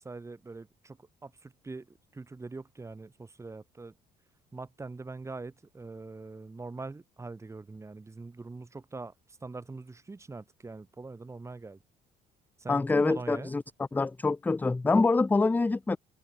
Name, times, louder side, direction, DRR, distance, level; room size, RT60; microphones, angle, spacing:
voice 1, 0.0-3.9 4.5-9.1 9.4-11.8 12.6-13.5, right 3 dB, 15° right, 1.4 m, -43 dB
voice 2, 12.7-13.6 13.9-16.0, left 3 dB, 10° left, 0.4 m, -25 dB
cardioid pair, 110°, 17 cm